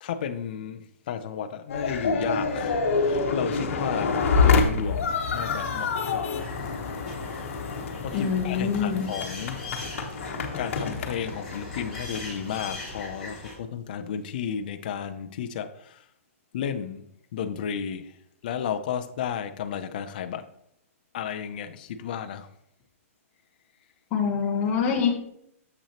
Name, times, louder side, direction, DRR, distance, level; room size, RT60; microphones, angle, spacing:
voice 1, 0.0-4.2 4.4-6.8 8.0-9.6 10.6-16.0 16.5-17.0 17.3-18.1 18.4-20.5 21.1-22.5, left 8 dB, 35° left, 0.4 m, -33 dB
sound 1, 1.7-13.0, left 4 dB, 60° left, 1.0 m, -27 dB
sound 2, 6.4-13.5, left 2 dB, ahead, 2.1 m, -41 dB
voice 2, 8.1-9.1 24.1-25.1, left 6 dB, 20° left, 0.8 m, -25 dB
7.0 x 5.8 x 2.9 m
hypercardioid pair, 175°, 8 cm